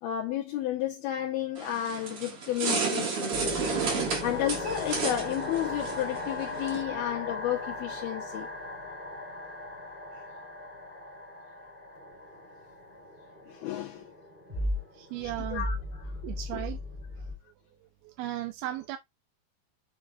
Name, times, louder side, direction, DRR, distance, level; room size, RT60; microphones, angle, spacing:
voice 1, 0.0-3.4 4.2-8.5 13.5-14.1 15.2-16.1 16.5-16.7, left 12 dB, 75° left, 2.8 m, -32 dB
sound 1, 1.6-6.8, right 5 dB, 50° right, 2.1 m, -32 dB
sound 2, 3.3-17.4, left 1 dB, 5° right, 3.1 m, -37 dB
voice 2, 14.9-15.7 16.2-16.8 18.0-19.0, right 15 dB, 80° right, 2.5 m, -36 dB
7.0 x 6.0 x 2.4 m
omnidirectional pair, 4.7 m